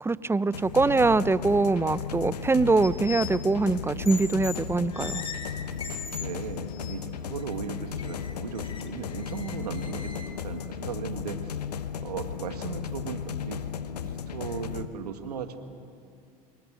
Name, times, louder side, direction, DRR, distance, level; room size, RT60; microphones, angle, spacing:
voice 1, 0.0-5.2, right 3 dB, 10° right, 17 dB, 0.7 m, -23 dB
sound 1, 0.5-14.8, left 8 dB, 90° left, 1.1 m, -35 dB
sound 2, 2.8-3.4 4.0-4.6 4.9-6.3 6.7-6.9 7.4-7.5 8.0-10.3, left 5 dB, 30° left, 3.4 m, -39 dB
voice 2, 6.1-11.6 12.0-13.6 14.0-15.6, right 7 dB, 85° right, 7 dB, 2.0 m, -37 dB
26.5 x 22.5 x 7.7 m, 2.3 s
hypercardioid pair, 80°, 20 cm